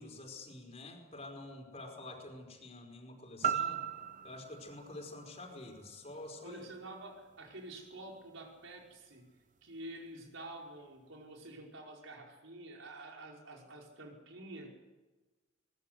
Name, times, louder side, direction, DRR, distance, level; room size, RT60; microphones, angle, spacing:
voice 1, 0.0-3.8 4.2-6.6, left 2 dB, 35° left, 2 dB, 4.9 m, -48 dB
sound 1, 3.4-7.5 8.0-8.1, right 8 dB, 40° right, 0.8 m, -39 dB
voice 2, 6.4-9.3 9.6-14.8, right 1 dB, 85° right, 0 dB, 5.3 m, -48 dB
22.5 x 20.0 x 8.0 m, 1.2 s
head